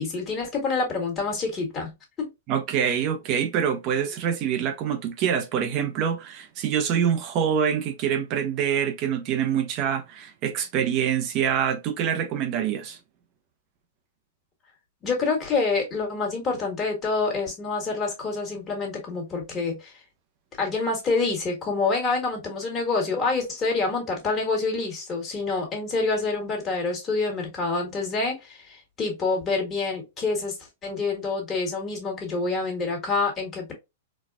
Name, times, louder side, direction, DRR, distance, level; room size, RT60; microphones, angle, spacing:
voice 1, 0.0-1.9 2.2-2.3 15.0-19.9 20.6-30.5 30.8-33.7, left 3 dB, 25° left, 1.6 m, -27 dB
voice 2, 2.5-13.0, right 8 dB, 40° right, 0.6 m, -25 dB
4.1 x 2.2 x 2.3 m
hypercardioid pair, 135°, 0 cm